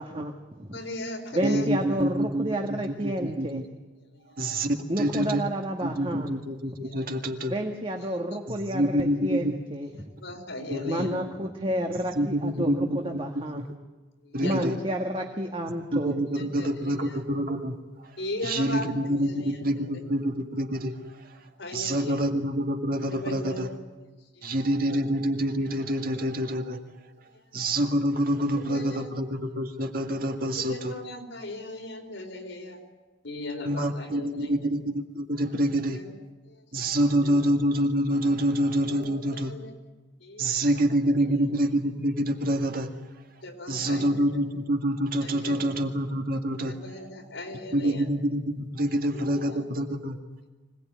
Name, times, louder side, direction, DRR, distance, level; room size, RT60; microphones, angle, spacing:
voice 1, 0.0-0.8 1.3-3.6 4.9-6.3 7.5-9.9 10.9-13.6 14.4-16.2, right 1 dB, 30° right, 2 dB, 1.7 m, -30 dB
voice 2, 0.7-1.7 4.1-4.3 5.2-5.5 6.8-7.0 10.2-11.2 14.2-14.7 16.3-17.2 18.2-19.7 21.6-22.2 23.1-23.6 24.4-24.5 24.9-25.0 28.6-29.1 30.6-32.8 33.2-34.5 35.9-36.1 36.9-37.0 37.2-37.4 38.8-39.7 40.2-40.7 41.2-41.4 43.4-44.3 45.2-45.7 46.6-48.1 49.1-49.6, left 2 dB, 80° left, 2 dB, 4.5 m, -38 dB
voice 3, 1.4-3.6 4.4-5.4 5.8-7.5 8.5-9.5 10.7-11.1 12.2-13.7 14.3-14.8 15.9-17.8 18.0-21.4 21.7-23.7 24.4-26.8 27.5-30.9 33.6-36.0 36.7-39.5 40.4-42.9 43.7-46.8 47.7-50.2, right 1 dB, 50° right, 4 dB, 2.1 m, -27 dB
25.5 x 18.5 x 9.4 m, 1.2 s
head